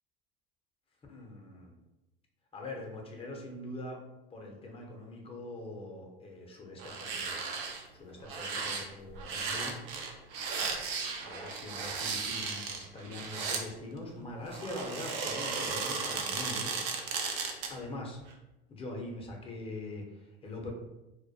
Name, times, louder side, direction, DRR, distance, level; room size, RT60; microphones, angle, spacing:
voice 1, 1.1-1.8 2.5-4.0 4.3-7.4 7.9-9.8 11.2-16.8 17.7-18.2 18.7-20.7, left 2 dB, 20° left, 0 dB, 0.6 m, -43 dB
sound 1, 6.8-7.8 8.2-13.7 14.5-17.8 18.2-18.3, right 5 dB, 60° right, 0.5 m, -35 dB
2.1 x 2.1 x 2.6 m, 0.96 s
hypercardioid pair, 90°, 30 cm